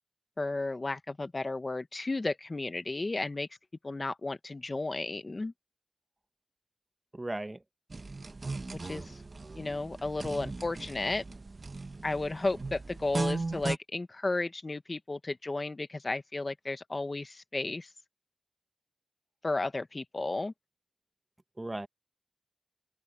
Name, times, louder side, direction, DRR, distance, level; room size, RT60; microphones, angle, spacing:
voice 1, 0.4-3.5 3.8-5.5 8.8-9.2 9.6-11.2 12.0-17.9 19.4-20.5, left 2 dB, 40° left, 1.2 m, -33 dB
voice 2, 7.1-7.6 21.6-21.9, right 2 dB, 25° right, 1.2 m, -36 dB
sound 1, 7.9-13.8, right 3 dB, 50° right, 1.1 m, -37 dB
open air
wide cardioid pair, 80°, 0 cm